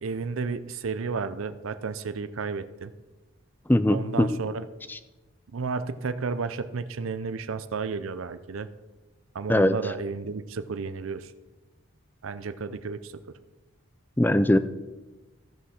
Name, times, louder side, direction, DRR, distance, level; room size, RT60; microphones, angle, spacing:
voice 1, 0.0-2.9 3.9-4.6 5.5-8.7 9.3-11.3 12.2-13.1, right 4 dB, 90° right, 11 dB, 0.6 m, -32 dB
voice 2, 3.7-4.4 4.9-5.0 9.5-9.7 14.2-14.6, left 1 dB, 10° left, 12 dB, 0.4 m, -21 dB
14.5 x 5.8 x 6.4 m, 1.2 s
head